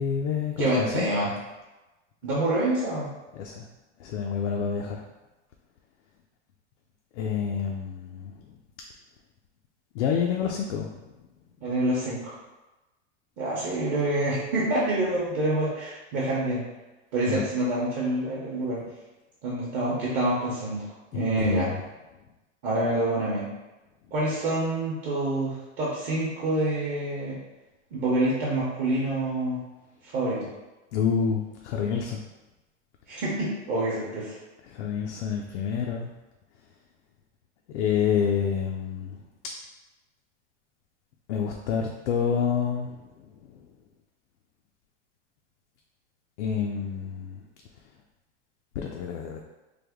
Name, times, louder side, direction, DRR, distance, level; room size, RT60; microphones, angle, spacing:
voice 1, 0.0-1.1 3.3-3.7 4.0-5.0 7.1-8.5 9.9-10.9 14.5-14.6 17.2-17.5 21.1-21.9 30.9-32.2 34.6-36.1 37.7-39.2 41.3-43.0 43.5-43.6 46.4-47.4 48.8-49.4, left 7 dB, 75° left, 1 dB, 0.5 m, -28 dB
voice 2, 0.6-1.3 2.2-3.1 11.6-12.3 13.4-16.6 17.1-18.8 19.4-21.7 22.6-23.5 24.1-27.4 27.9-29.6 30.0-30.5 33.1-34.4, right 1 dB, 35° right, -7 dB, 0.7 m, -27 dB
3.4 x 2.0 x 3.4 m, 1.1 s
supercardioid pair, 150°, 35 cm